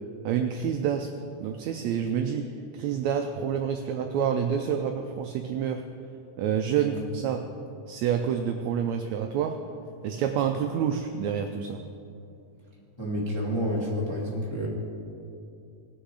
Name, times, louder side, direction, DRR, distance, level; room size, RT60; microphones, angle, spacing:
voice 1, 0.2-1.1 1.4-2.5 2.7-5.8 6.4-7.4 7.9-9.6 10.0-11.8, right 8 dB, 80° right, 5 dB, 1.6 m, -28 dB
voice 2, 13.0-14.7, equal, 15° left, -5 dB, 1.1 m, -29 dB
19.0 x 6.5 x 4.8 m, 2.6 s
omnidirectional pair, 3.7 m